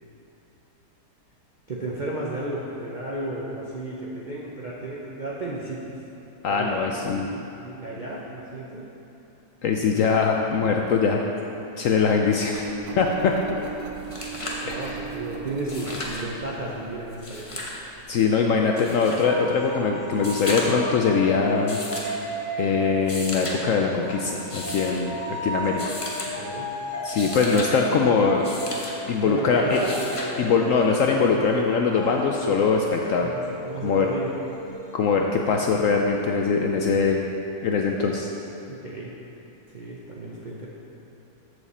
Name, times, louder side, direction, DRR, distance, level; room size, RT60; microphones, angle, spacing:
voice 1, 1.7-5.8 6.5-6.8 7.2-8.9 14.6-17.6 26.4-26.7 29.2-30.7 33.2-34.4 38.7-39.1 39.7-40.7, right 2 dB, 50° right, -5 dB, 0.5 m, -33 dB
voice 2, 6.4-7.3 9.6-11.2 11.8-12.6 13.0-13.3 14.7-15.0 18.1-21.8 22.5-26.0 27.0-28.6 29.1-29.8 30.4-33.3 33.8-34.1 34.9-37.2 37.6-38.3, left 5 dB, 70° left, 1 dB, 0.8 m, -22 dB
Engine, 12.5-18.0, right 7 dB, 90° right, 1.3 m, -38 dB
sound 1, 13.6-13.7 14.0-14.7 15.6-16.3 17.1-17.8 18.8-19.3 20.1-20.9 21.7-22.2 22.9-23.6 24.4-25.0 25.8-26.3 26.9-27.7 28.4-28.9 29.7-30.3 31.7-31.8, left 2 dB, 25° left, 0.8 m, -35 dB
sound 2, 19.2-23.5 24.1-35.4, equal, 50° left, 1.9 m, -35 dB
14.0 x 4.9 x 4.2 m, 3.0 s
omnidirectional pair, 1.8 m